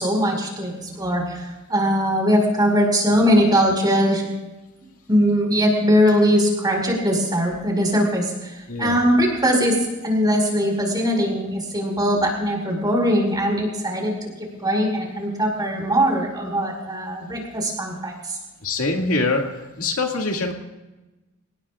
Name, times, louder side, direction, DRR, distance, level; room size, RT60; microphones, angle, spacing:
voice 1, 0.0-4.2 5.1-18.4, equal, 20° right, 1 dB, 5.0 m, -21 dB
voice 2, 8.7-9.0 18.6-19.4 19.8-20.5, left 3 dB, 70° left, 2 dB, 2.3 m, -23 dB
29.0 x 18.0 x 2.5 m, 1.1 s
head